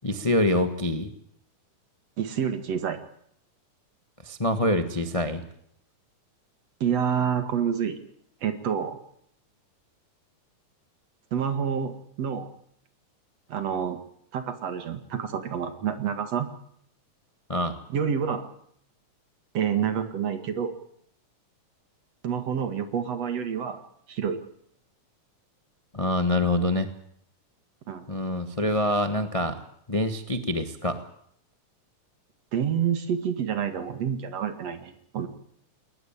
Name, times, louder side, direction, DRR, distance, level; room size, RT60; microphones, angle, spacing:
voice 1, 0.0-1.1 4.2-5.4 17.5-17.8 25.9-26.9 28.1-29.6 29.9-31.0, left 1 dB, 40° left, 8 dB, 0.5 m, -25 dB
voice 2, 2.2-3.0 6.8-8.0 8.4-9.0 11.3-12.5 13.5-14.0 14.3-16.5 17.9-18.5 19.5-20.7 22.2-23.8 24.1-24.4 27.9-28.0 32.5-35.3, right 8 dB, 55° right, 9 dB, 2.9 m, -28 dB
20.5 x 19.5 x 8.9 m, 0.68 s
omnidirectional pair, 3.7 m